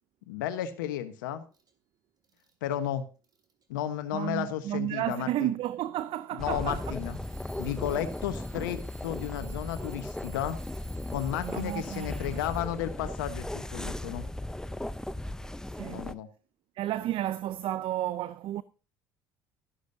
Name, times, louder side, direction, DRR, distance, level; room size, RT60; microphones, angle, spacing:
voice 1, 0.3-1.4 2.6-3.0 3.7-5.5 6.3-7.2 7.6-10.6 11.1-14.2 15.9-16.3, left 11 dB, 80° left, 1.2 m, -33 dB
Alarm / Clock, 1.5-1.7 2.2-2.7 3.2-3.6 4.5-4.6 6.6-13.0, right 2 dB, 40° right, 2.7 m, -54 dB
voice 2, 4.1-6.8 11.4-12.4 15.7-16.1 16.8-18.6, right 13 dB, 60° right, 0.5 m, -32 dB
sound 1, 6.4-16.1, left 1 dB, 5° left, 0.6 m, -37 dB
12.5 x 11.5 x 2.7 m
hypercardioid pair, 60°, 10 cm